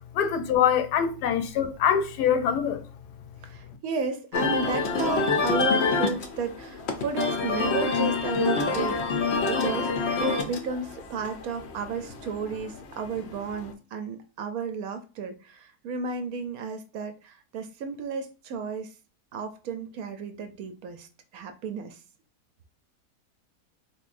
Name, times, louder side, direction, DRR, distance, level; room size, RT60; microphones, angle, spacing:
voice 1, 0.1-2.8, left 8 dB, 80° left, 1.2 m, -24 dB
voice 2, 3.4-9.9 10.2-18.9 19.3-22.0, right 4 dB, 70° right, 0.9 m, -33 dB
sound 1, 4.3-13.7, left 4 dB, 60° left, 0.7 m, -27 dB
3.6 x 3.2 x 2.5 m
omnidirectional pair, 1.8 m